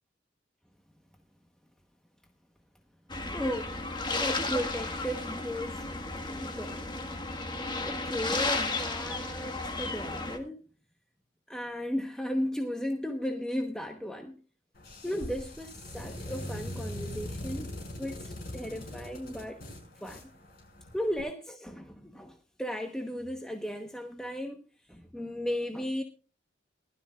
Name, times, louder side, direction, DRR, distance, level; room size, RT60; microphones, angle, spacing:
sound 1, 3.1-10.4, left 3 dB, 25° left, 1.5 m, -33 dB
voice 1, 3.3-3.8 4.2-6.9 7.8-10.6 11.5-14.4 15.0-17.7 18.0-19.6 20.0-20.3 20.9-24.6 24.9-26.0, equal, 5° left, 1.0 m, -35 dB
sound 2, 14.8-21.2, left 1 dB, 55° left, 6.0 m, -41 dB
19.5 x 12.5 x 2.4 m
head